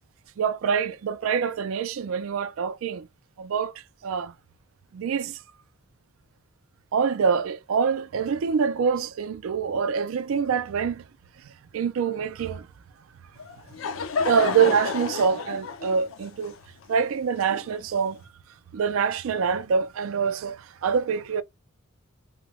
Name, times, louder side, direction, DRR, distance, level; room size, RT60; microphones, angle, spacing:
voice 1, 0.4-3.1 3.4-4.3 4.9-5.4 6.9-11.0 11.7-12.7 14.2-16.5 16.9-18.2 18.7-21.4, right 6 dB, 85° right, 0.4 m, -25 dB
Laughter / Crowd, 13.4-18.1, left 5 dB, 80° left, 0.6 m, -31 dB
2.8 x 2.1 x 3.0 m
head